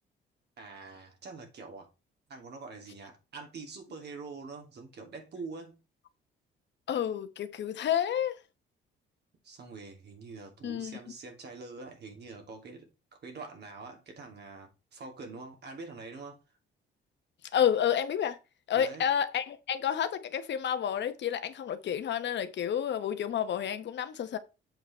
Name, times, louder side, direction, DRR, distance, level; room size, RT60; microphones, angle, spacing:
voice 1, 0.6-1.9 2.3-5.8 9.4-12.9 13.2-16.4 18.7-19.1, right 4 dB, 60° right, 2.8 m, -45 dB
voice 2, 6.9-8.4 10.6-11.0 17.5-18.4 18.7-24.4, left 9 dB, 65° left, 1.1 m, -30 dB
7.7 x 5.1 x 4.4 m
cardioid pair, 90°, 20 cm